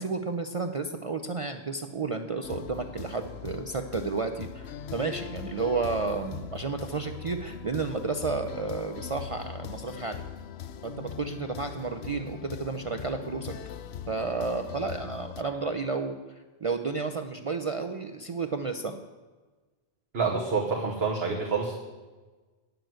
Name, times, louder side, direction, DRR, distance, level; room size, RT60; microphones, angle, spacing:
voice 1, 0.0-10.3 10.8-13.5 14.1-16.1 16.6-19.0, right 4 dB, 40° right, 6 dB, 0.5 m, -32 dB
sound 1, 2.4-15.4, left 8 dB, 85° left, 0.8 m, -41 dB
voice 2, 20.1-21.8, right 4 dB, 80° right, -1 dB, 1.4 m, -27 dB
9.3 x 6.8 x 7.6 m, 1.3 s
omnidirectional pair, 1.0 m